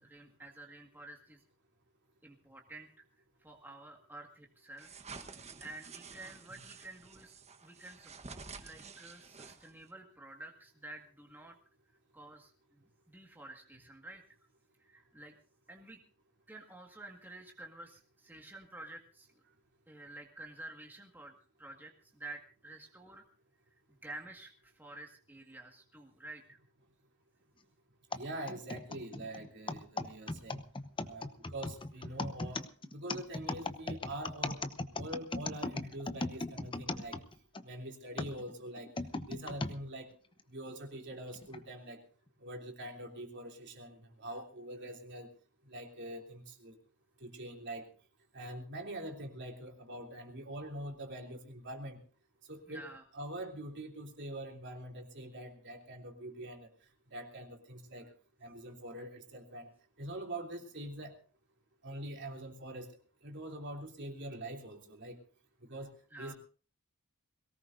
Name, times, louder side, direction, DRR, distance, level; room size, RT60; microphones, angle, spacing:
voice 1, 0.0-1.4 2.2-2.9 3.4-4.9 5.2-7.3 7.6-11.6 12.1-12.8 13.1-14.2 14.8-15.3 15.7-16.0 16.5-19.3 19.9-23.2 24.0-26.6 52.7-53.0 66.1-66.3, right 2 dB, 10° right, 1 dB, 1.8 m, -50 dB
sound 1, 4.8-9.9, right 4 dB, 30° right, 1.2 m, -50 dB
sound 2, 28.1-37.6 38.2-39.8 40.4-40.5 41.3-41.6, left 2 dB, 25° left, 0.9 m, -38 dB
voice 2, 28.1-30.6 31.0-34.6 35.0-37.2 37.6-38.9 39.3-40.1 40.5-42.0 42.4-45.3 45.6-46.8 47.2-47.9 48.3-52.0 52.5-52.9 53.1-56.7 57.1-58.1 58.4-59.7 60.0-61.2 61.8-62.9 63.2-65.2 65.7-66.3, right 1 dB, 55° right, 2 dB, 3.1 m, -44 dB
22.5 x 18.0 x 2.6 m, 0.38 s
head